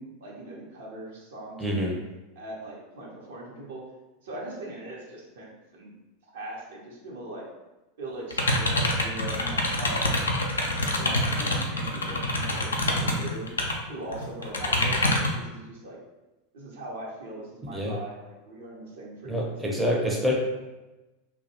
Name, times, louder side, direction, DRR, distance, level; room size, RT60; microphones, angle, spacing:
voice 1, 0.0-2.0 2.4-3.8 4.2-5.9 6.3-7.4 8.0-10.1 11.0-13.5 13.9-16.0 16.5-19.8, right 1 dB, 70° right, -4 dB, 0.7 m, -40 dB
voice 2, 1.6-1.9 17.7-18.0 19.3-20.3, equal, 10° right, -2 dB, 0.5 m, -26 dB
sound 1, 8.3-13.7 14.1-15.4, left 1 dB, 80° left, 0.3 m, -26 dB
2.2 x 2.0 x 2.8 m, 1.1 s
figure-of-eight pair, 85°, 0 cm